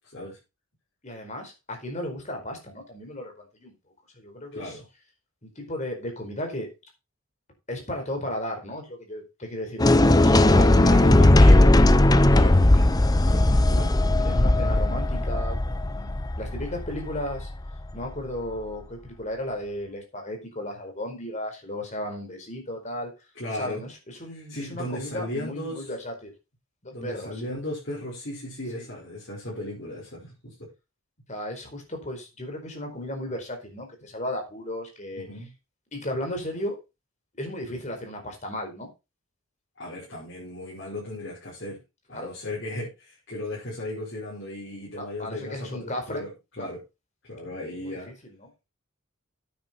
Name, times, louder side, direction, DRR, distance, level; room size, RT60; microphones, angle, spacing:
voice 1, 1.0-3.7 4.2-4.7 5.4-6.7 7.7-11.8 12.4-12.6 13.7-13.9 14.2-17.5 17.9-23.1 23.6-26.3 26.8-27.5 28.7-28.9 31.3-35.3 35.9-36.7 37.4-38.9 42.1-42.3 45.0-46.2 46.6-46.7 47.8-48.1, left 1 dB, 35° left, 3 dB, 4.6 m, -35 dB
voice 2, 4.5-4.9 10.5-13.0 13.3-13.9 23.4-23.8 24.3-25.9 26.9-30.7 35.1-35.5 39.8-41.8 42.1-46.3 46.6-46.8 47.2-48.1, left 1 dB, 55° left, -6 dB, 5.6 m, -36 dB
sound 1, 9.8-17.9, left 1 dB, 20° left, 0.6 m, -18 dB
9.8 x 9.5 x 4.5 m, 0.27 s
head